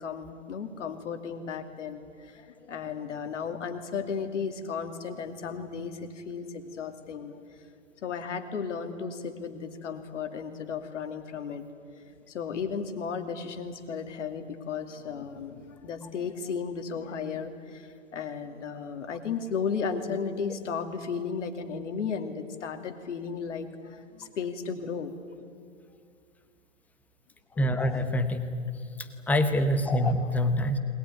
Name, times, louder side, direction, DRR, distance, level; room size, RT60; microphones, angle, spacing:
voice 1, 0.0-7.4 8.0-11.6 12.1-17.9 18.1-25.1 27.6-27.7 30.0-30.1, left 6 dB, 65° left, 7 dB, 2.6 m, -34 dB
voice 2, 27.6-28.6 29.0-30.8, left 1 dB, 5° left, 9 dB, 0.7 m, -26 dB
21.5 x 19.5 x 9.7 m, 2.3 s
hypercardioid pair, 150°, 40 cm